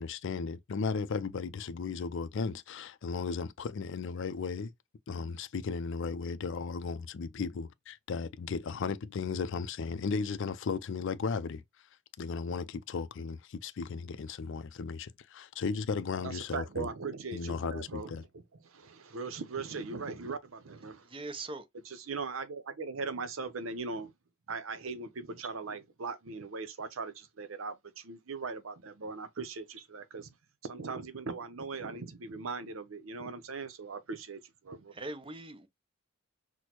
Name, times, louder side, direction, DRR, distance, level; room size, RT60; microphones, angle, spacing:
voice 1, 0.0-4.7 5.1-11.6 12.2-16.9 17.3-18.2, left 5 dB, 65° left, 0.4 m, -35 dB
voice 2, 16.2-18.1 18.7-21.1 22.1-24.1 24.5-30.3 30.6-34.9, right 4 dB, 85° right, 0.7 m, -39 dB
voice 3, 21.0-21.7 34.9-35.7, right 2 dB, 25° right, 0.6 m, -41 dB
6.1 x 2.1 x 2.9 m
head